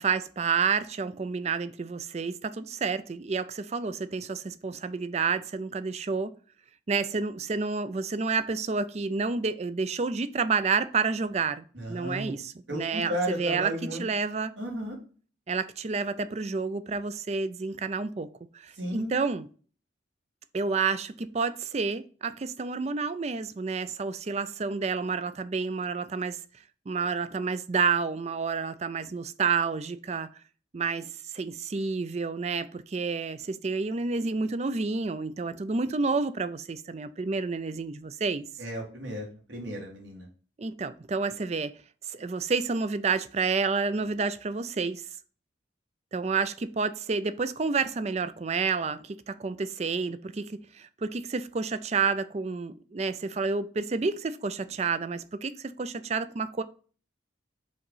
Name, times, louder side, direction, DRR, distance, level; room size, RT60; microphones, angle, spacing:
voice 1, 0.0-6.3 6.9-14.5 15.5-18.3 18.6-19.5 20.5-26.4 26.9-30.3 30.7-31.1 31.3-38.5 40.6-41.8 42.1-45.0 46.1-56.6, right 4 dB, 35° right, 0.4 m, -29 dB
voice 2, 11.7-12.4 12.7-14.0 14.6-15.0 18.8-19.1 38.6-40.3, right 1 dB, 75° right, 2.3 m, -34 dB
5.2 x 3.9 x 5.5 m
head